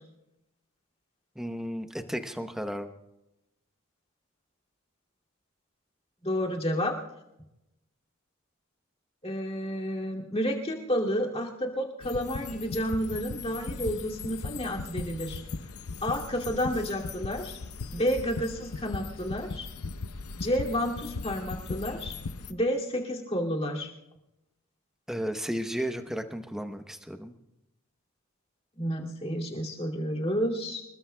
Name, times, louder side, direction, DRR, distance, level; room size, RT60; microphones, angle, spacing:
voice 1, 1.4-2.9 25.1-27.3, equal, ahead, 7 dB, 0.9 m, -34 dB
voice 2, 6.2-7.0 9.2-15.4 16.0-17.6 17.9-19.7 20.4-22.1 22.5-23.9 28.8-30.8, equal, 30° left, -2 dB, 2.5 m, -30 dB
sound 1, 12.0-22.5, left 4 dB, 85° left, 0.7 m, -38 dB
26.0 x 21.0 x 2.3 m, 0.89 s
head